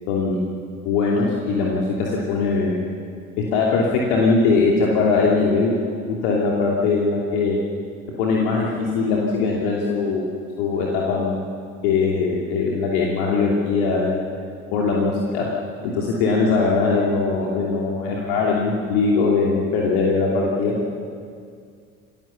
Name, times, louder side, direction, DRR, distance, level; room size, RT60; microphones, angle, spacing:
voice 1, 0.1-0.4 0.8-2.9 3.5-5.7 6.2-7.6 8.2-10.2 10.6-11.5 11.8-14.3 14.7-15.4 15.8-20.7, left 4 dB, 60° left, -3 dB, 2.9 m, -21 dB
28.0 x 16.0 x 7.0 m, 2.3 s
figure-of-eight pair, 60°, 38 cm